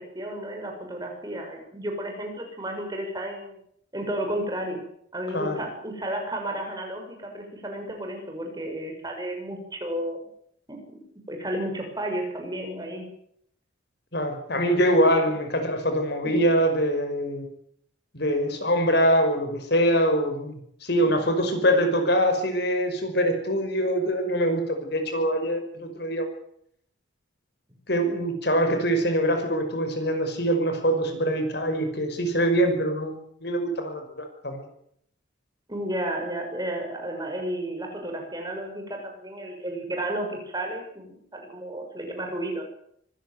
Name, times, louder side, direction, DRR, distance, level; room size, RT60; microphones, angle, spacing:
voice 1, 0.0-3.6 3.9-4.8 5.1-10.3 10.7-11.0 11.3-13.1 16.2-16.5 21.1-21.3 35.7-42.6, right 1 dB, 20° right, 3 dB, 6.4 m, -32 dB
voice 2, 14.1-17.5 18.1-26.3 27.9-34.7, equal, 55° left, 7 dB, 5.5 m, -24 dB
25.0 x 16.0 x 9.3 m, 0.70 s
head